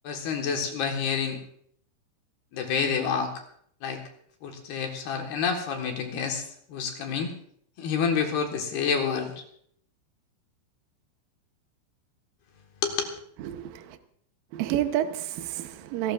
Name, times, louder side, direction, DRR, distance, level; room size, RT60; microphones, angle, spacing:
voice 1, 0.0-1.4 2.5-3.3 3.8-4.0 4.4-7.3 7.8-9.3 12.8-13.1, left 6 dB, 65° left, 2 dB, 3.1 m, -28 dB
voice 2, 13.4-14.0 14.5-16.1, right 12 dB, 85° right, 8 dB, 2.0 m, -29 dB
27.5 x 13.0 x 2.5 m, 0.64 s
omnidirectional pair, 5.5 m